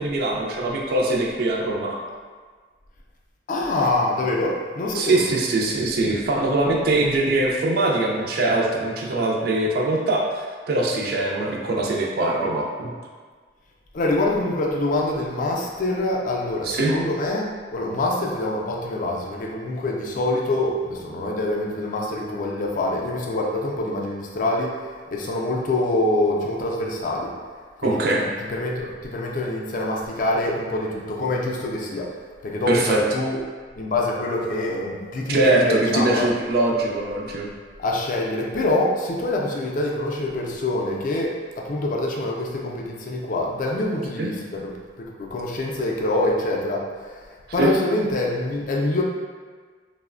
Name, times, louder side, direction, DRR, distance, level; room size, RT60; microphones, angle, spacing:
voice 1, 0.0-2.0 4.9-12.9 16.6-16.9 27.8-28.3 32.7-33.0 35.3-37.5 44.2-44.3 47.6-47.7, right 2 dB, 55° right, -1 dB, 0.3 m, -22 dB
voice 2, 3.5-5.3 13.9-27.3 27.8-32.2 32.4-33.4 33.8-36.3 37.8-47.2 47.5-49.0, left 2 dB, 45° left, -1 dB, 0.3 m, -25 dB
3.0 x 2.0 x 2.4 m, 1.6 s
head